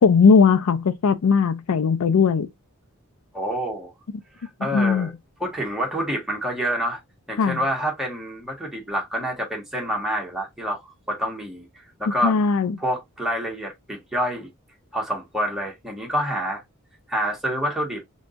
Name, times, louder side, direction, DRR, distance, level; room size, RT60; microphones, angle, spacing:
voice 1, 0.0-2.5 4.7-5.1 7.4-7.6 12.2-12.8, left 5 dB, 70° left, 0.4 m, -18 dB
voice 2, 3.3-3.9 4.4-5.1 5.4-7.0 7.3-11.7 12.0-12.4 12.8-14.5 14.9-16.6 17.1-18.0, equal, ahead, 1.4 m, -27 dB
3.9 x 3.6 x 2.5 m
head